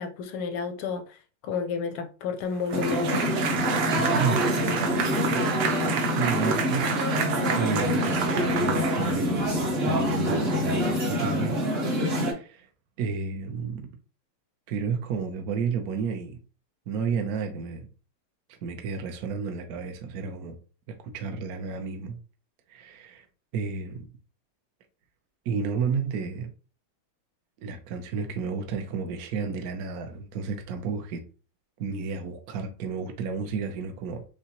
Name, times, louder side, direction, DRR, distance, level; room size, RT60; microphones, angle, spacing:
voice 1, 0.0-3.2, left 5 dB, 90° left, 1.5 m, -31 dB
sound 1, 2.7-12.3, equal, 40° right, 1.0 m, -26 dB
sound 2, 2.7-9.5, right 6 dB, 85° right, 1.7 m, -30 dB
voice 2, 3.9-4.4 6.0-7.0 7.5-11.6 12.1-12.7 13.0-13.9 14.7-16.4 16.9-17.9 18.5-20.6 20.9-22.2 22.7-23.3 23.5-24.1 25.4-26.5 27.6-31.2 31.8-34.3, right 5 dB, 65° right, 0.9 m, -31 dB
6.6 x 2.2 x 2.9 m
omnidirectional pair, 2.3 m